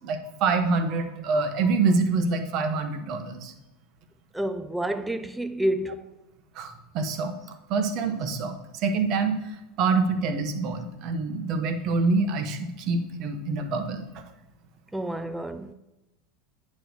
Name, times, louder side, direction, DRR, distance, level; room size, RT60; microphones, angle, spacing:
voice 1, 0.0-3.5 6.5-7.3 7.7-14.2, right 4 dB, 50° right, 1.0 m, -26 dB
voice 2, 4.3-6.1 14.9-15.7, right 1 dB, 5° right, 0.4 m, -29 dB
9.1 x 3.2 x 6.4 m
hypercardioid pair, 90°, 0 cm